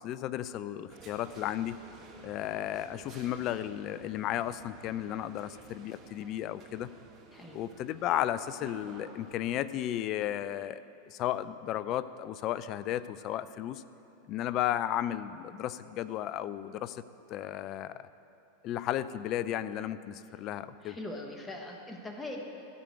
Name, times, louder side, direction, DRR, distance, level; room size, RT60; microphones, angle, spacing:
voice 1, 0.0-1.8 2.2-6.9 7.5-10.8 11.1-13.8 14.3-17.0 17.3-17.9 18.6-21.0, left 12 dB, 45° left, 15 dB, 0.4 m, -34 dB
sound 1, 0.9-9.3, right 4 dB, 40° right, 1.5 m, -52 dB
voice 2, 7.3-7.6 20.8-22.4, left 2 dB, 15° left, 1 dB, 1.2 m, -41 dB
13.5 x 5.1 x 7.8 m, 2.7 s
hypercardioid pair, 95°, 0 cm